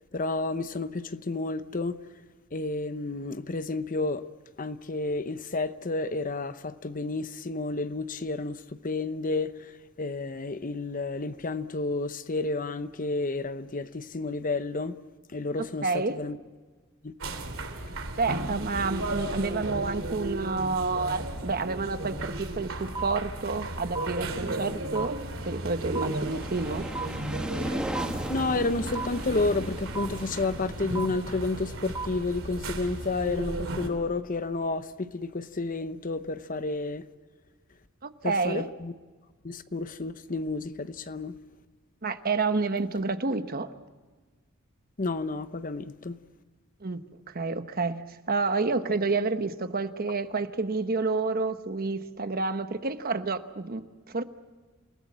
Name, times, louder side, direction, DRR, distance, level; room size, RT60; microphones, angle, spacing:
voice 1, 0.1-2.0 2.5-4.3 4.6-9.7 10.0-15.0 15.3-16.4 17.0-17.1 28.3-37.1 38.2-38.9 39.4-41.4 45.0-46.2, left 3 dB, 40° left, 0.9 m, -31 dB
voice 2, 15.6-16.2 18.2-25.2 25.4-26.9 38.0-38.7 42.0-43.7 46.8-47.0 47.3-54.2, right 3 dB, 45° right, 1.1 m, -29 dB
sound 1, 17.2-33.9, right 1 dB, 75° right, 3.1 m, -35 dB
sound 2, 23.0-23.1 24.0-24.1 25.0-25.1 26.0-26.1 27.0-27.1 28.0-28.1 29.0-29.1 30.0-30.1 31.0-31.1 32.0-32.1, right 4 dB, 20° right, 1.1 m, -32 dB
sound 3, 25.4-32.1, equal, 5° right, 1.5 m, -38 dB
28.5 x 18.5 x 7.4 m
head